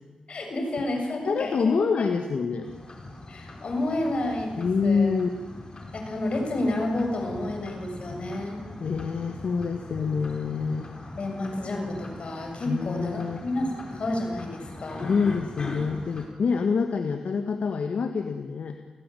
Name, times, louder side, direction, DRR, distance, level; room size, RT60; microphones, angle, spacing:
voice 1, 0.3-1.9 3.3-5.2 5.9-8.6 11.2-15.1, left 1 dB, 60° left, 3 dB, 7.2 m, -30 dB
voice 2, 1.3-2.7 4.6-5.3 8.8-10.9 12.7-13.4 15.0-18.8, left 5 dB, 80° left, 6 dB, 1.8 m, -26 dB
sound 1, 2.6-16.3, left 2 dB, 40° left, 4.8 m, -42 dB
29.5 x 19.0 x 9.2 m, 1.4 s
wide cardioid pair, 115°, 2 cm